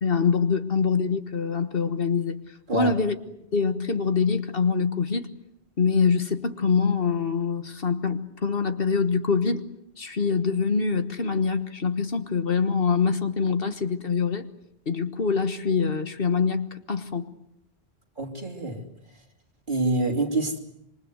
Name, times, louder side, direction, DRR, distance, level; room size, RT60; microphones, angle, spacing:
voice 1, 0.0-3.1 3.5-5.3 5.8-9.6 10.0-14.5 14.9-17.3, left 5 dB, 60° left, 1.6 m, -24 dB
voice 2, 18.2-18.8 19.7-20.6, right 2 dB, 50° right, 3.3 m, -26 dB
27.0 x 23.5 x 8.0 m
omnidirectional pair, 1.1 m